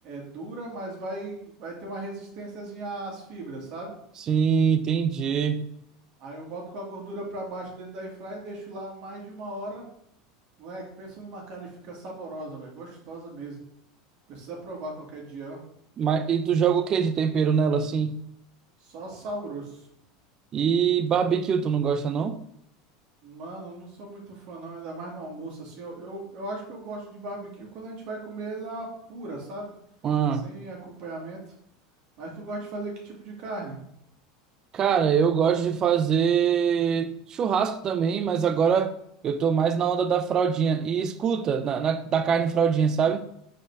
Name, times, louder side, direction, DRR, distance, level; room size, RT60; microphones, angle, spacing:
voice 1, 0.0-3.9 6.2-9.9 10.6-13.6 14.3-15.6 18.8-19.9 23.2-29.7 30.4-31.4 32.2-33.8, right 2 dB, 50° right, 2.0 m, -37 dB
voice 2, 4.3-5.6 16.0-18.2 20.5-22.4 30.0-30.5 34.7-39.0 39.2-43.3, right 7 dB, 30° right, 0.4 m, -23 dB
5.2 x 4.3 x 4.6 m
supercardioid pair, 140°, 2 cm